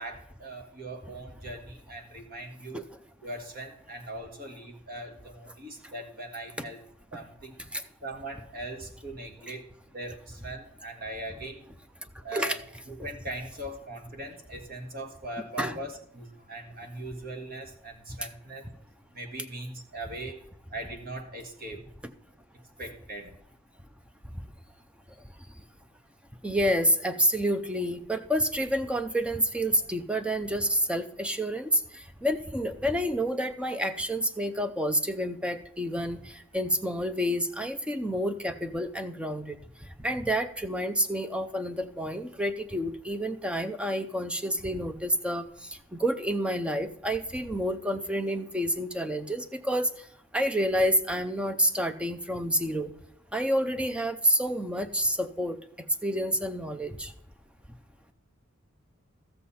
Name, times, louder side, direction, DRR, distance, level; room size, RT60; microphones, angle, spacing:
voice 1, 0.0-2.9 3.2-6.8 7.1-7.6 8.0-11.7 12.2-12.6 12.9-18.7 19.1-20.4 20.7-21.9 22.8-23.4, right 1 dB, 45° right, 4 dB, 1.6 m, -40 dB
voice 2, 26.4-39.6 40.0-49.9 50.3-52.9 53.3-55.6 56.0-57.1, equal, 5° right, 10 dB, 0.5 m, -28 dB
13.5 x 7.6 x 4.2 m, 0.73 s
head